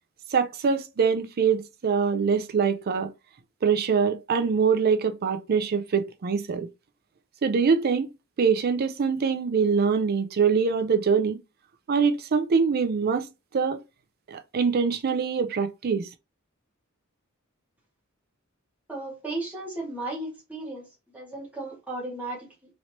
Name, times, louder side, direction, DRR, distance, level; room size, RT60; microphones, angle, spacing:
voice 1, 0.3-3.1 3.6-6.7 7.4-8.1 8.4-11.4 11.9-13.3 13.5-13.8 14.3-16.1, right 6 dB, 45° right, 0.4 m, -24 dB
voice 2, 18.9-20.8 21.1-22.5, right 2 dB, 5° right, 1.5 m, -35 dB
3.1 x 2.9 x 2.8 m
head